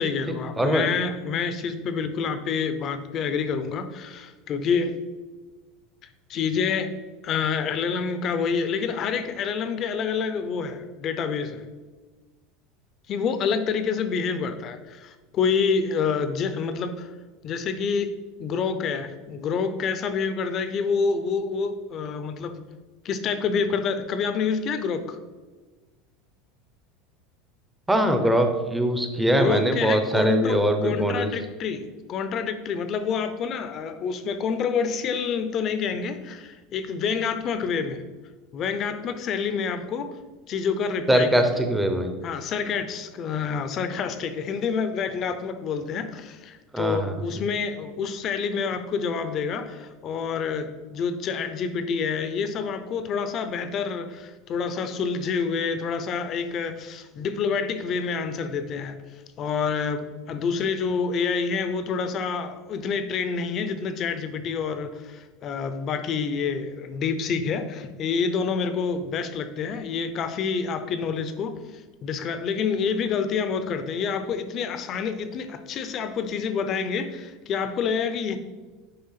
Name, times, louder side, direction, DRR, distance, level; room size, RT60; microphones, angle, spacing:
voice 1, 0.0-5.0 6.3-6.9 7.2-11.6 13.1-17.1 17.4-18.1 18.4-22.6 23.0-25.2 29.4-38.0 38.5-40.2 40.5-41.4 42.2-59.0 59.4-78.4, left 5 dB, 30° left, 10 dB, 0.7 m, -27 dB
voice 2, 0.6-0.9 27.9-31.3 41.1-42.1 46.7-47.2, right 1 dB, 5° right, 6 dB, 0.7 m, -22 dB
9.7 x 3.6 x 5.7 m, 1.3 s
supercardioid pair, 165°, 0 cm